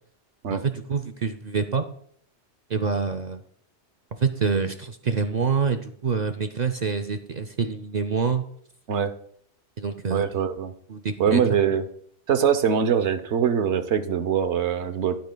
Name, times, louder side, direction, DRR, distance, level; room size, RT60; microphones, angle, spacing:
voice 1, 0.5-1.9 2.7-3.4 4.2-8.4 9.8-10.3 10.9-11.6, right 5 dB, 50° right, 6 dB, 0.6 m, -26 dB
voice 2, 10.1-10.7 11.2-11.9 12.3-15.2, right 7 dB, 90° right, 10 dB, 1.1 m, -23 dB
12.5 x 11.5 x 2.2 m, 0.64 s
omnidirectional pair, 1.1 m